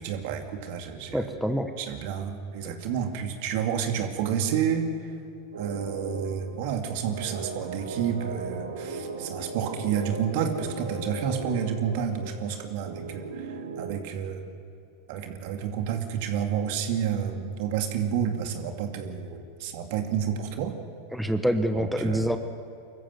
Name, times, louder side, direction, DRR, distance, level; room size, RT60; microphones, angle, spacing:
voice 1, 0.0-1.3 1.8-4.9 5.6-14.5 15.1-20.8 21.7-22.3, right 8 dB, 60° right, 5 dB, 2.4 m, -30 dB
voice 2, 1.1-1.7 21.1-22.4, equal, ahead, 7 dB, 1.3 m, -26 dB
sound 1, 5.5-14.0, right 3 dB, 85° right, 2.0 m, -37 dB
24.0 x 14.5 x 7.8 m, 2.7 s
hypercardioid pair, 95°, 0 cm